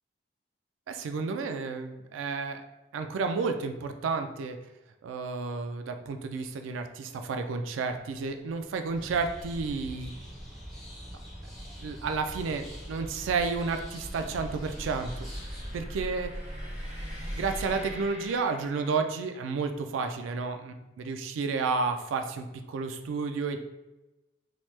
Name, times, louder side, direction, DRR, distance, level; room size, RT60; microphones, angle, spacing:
voice 1, 0.9-2.6 2.9-4.6 5.0-10.2 11.8-15.1 15.4-16.3 17.3-23.6, right 4 dB, 90° right, 7 dB, 0.3 m, -31 dB
sound 1, 8.0-19.3, equal, 35° right, 0.7 m, -42 dB
sound 2, 8.9-15.8, equal, ahead, 0.9 m, -43 dB
2.9 x 2.0 x 3.1 m, 1.0 s
head